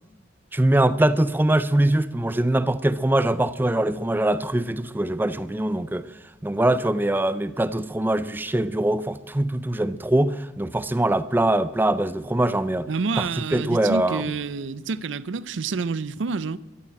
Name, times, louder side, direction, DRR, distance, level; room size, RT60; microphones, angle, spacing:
voice 1, 0.5-6.1 6.4-12.9 13.2-13.3 13.5-14.3, right 1 dB, 10° right, 0.4 m, -22 dB
voice 2, 12.9-16.6, right 4 dB, 80° right, 0.5 m, -28 dB
14.0 x 8.8 x 8.8 m
head